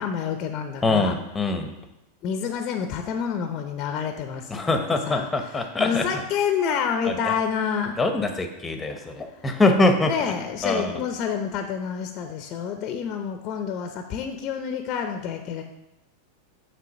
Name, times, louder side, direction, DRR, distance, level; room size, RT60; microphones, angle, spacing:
voice 1, 0.0-1.2 2.2-4.7 5.0-7.9 10.1-15.6, left 7 dB, 45° left, 6 dB, 0.6 m, -28 dB
voice 2, 0.8-1.7 4.5-6.2 7.1-7.3 8.0-10.1 10.6-11.0, left 2 dB, 15° left, 6 dB, 0.9 m, -23 dB
7.5 x 3.2 x 5.3 m, 0.92 s
hypercardioid pair, 105°, 0 cm